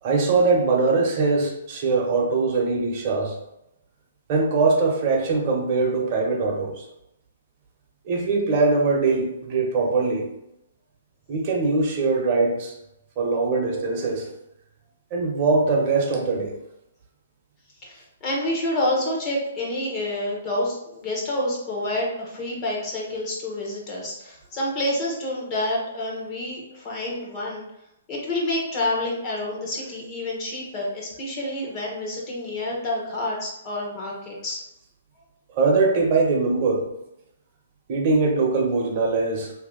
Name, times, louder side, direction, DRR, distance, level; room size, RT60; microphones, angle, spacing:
voice 1, 0.0-3.4 4.3-6.9 8.0-10.3 11.3-12.8 13.2-14.3 15.1-16.6 35.5-36.8 37.9-39.5, right 3 dB, 35° right, -1 dB, 1.0 m, -22 dB
voice 2, 17.8-27.6 28.1-34.6, left 1 dB, 30° left, -4 dB, 1.1 m, -28 dB
2.8 x 2.8 x 3.8 m, 0.87 s
hypercardioid pair, 150°, 0 cm